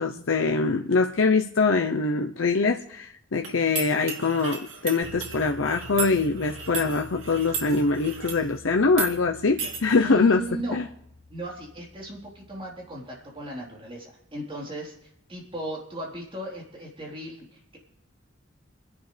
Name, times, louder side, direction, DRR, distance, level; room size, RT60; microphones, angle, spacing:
voice 1, 0.0-10.4 10.7-10.9, left 4 dB, 90° left, 4 dB, 0.7 m, -23 dB
sound 1, 3.4-8.5 8.9-9.1 9.6-9.8, right 5 dB, 80° right, 2.6 m, -35 dB
sound 2, 5.0-13.1, left 2 dB, 20° left, 3.9 m, -47 dB
voice 2, 10.0-10.8 11.3-17.8, right 1 dB, 30° right, -2 dB, 3.9 m, -37 dB
29.0 x 11.0 x 3.3 m, 0.73 s
head